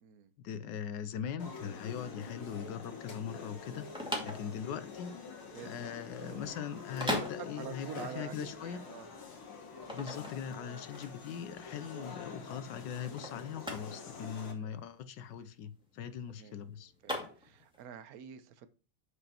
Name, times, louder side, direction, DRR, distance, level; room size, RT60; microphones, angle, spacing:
voice 1, 0.4-3.9 4.2-5.2 5.6-8.8 9.9-16.9, left 8 dB, 65° left, 1.2 m, -40 dB
sound 1, 1.4-14.5, left 5 dB, 85° left, 2.4 m, -47 dB
sound 2, 3.6-17.8, equal, ahead, 2.0 m, -41 dB
voice 2, 4.1-4.4 5.5-6.4 7.6-9.1 10.9-11.0 14.6-14.7 16.3-16.5 17.0-18.7, right 9 dB, 60° right, 1.0 m, -48 dB
8.4 x 5.1 x 4.3 m
omnidirectional pair, 2.3 m